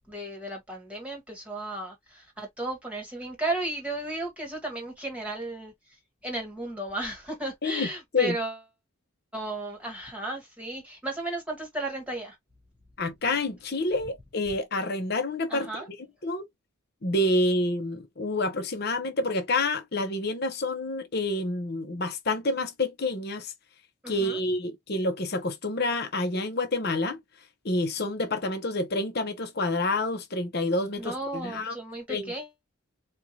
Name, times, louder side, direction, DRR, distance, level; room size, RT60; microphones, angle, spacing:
voice 1, 0.1-5.7 6.2-8.6 9.3-12.4 15.5-15.9 24.0-24.4 31.0-32.5, right 2 dB, 5° right, 1.4 m, -34 dB
voice 2, 7.6-8.3 13.0-16.0 16.2-16.5 17.0-23.5 24.1-27.2 27.6-31.7 32.1-32.3, left 2 dB, 45° left, 0.9 m, -28 dB
4.6 x 2.4 x 2.9 m
head